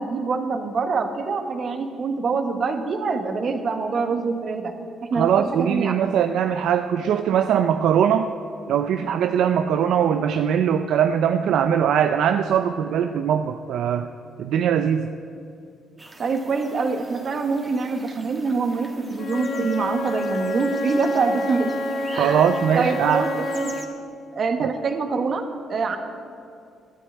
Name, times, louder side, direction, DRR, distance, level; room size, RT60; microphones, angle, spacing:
voice 1, 0.0-4.7 5.0-6.2 16.2-21.7 22.1-22.5 22.7-23.3 23.5-23.7 24.3-26.0, right 4 dB, 50° right, 7 dB, 1.4 m, -25 dB
voice 2, 5.1-8.3 8.7-14.1 14.4-15.1 22.1-23.2 24.6-24.7, right 8 dB, 75° right, 8 dB, 0.5 m, -21 dB
sound 1, 16.0-23.8, right 2 dB, 25° right, 1.8 m, -44 dB
Wind instrument woodwind instrument, 19.1-24.0, left 1 dB, 65° left, 1.1 m, -28 dB
11.5 x 9.7 x 8.9 m, 2.4 s
cardioid pair, 80°, 0 cm